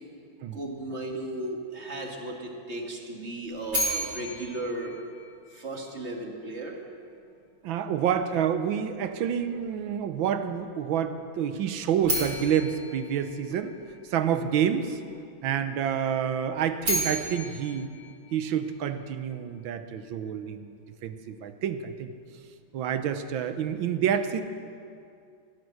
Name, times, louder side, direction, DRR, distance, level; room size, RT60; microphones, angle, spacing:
voice 1, 0.5-4.9 5.5-6.8, right 1 dB, 35° right, 1 dB, 1.9 m, -35 dB
sound 1, 3.7-5.8 12.0-14.2 16.6-19.0, right 1 dB, 55° right, 5.2 m, -33 dB
voice 2, 7.6-13.7 14.0-15.0 15.4-17.9 18.3-22.1 22.7-24.4, right 8 dB, 75° right, 10 dB, 1.5 m, -28 dB
17.0 x 12.5 x 6.4 m, 2.4 s
omnidirectional pair, 2.2 m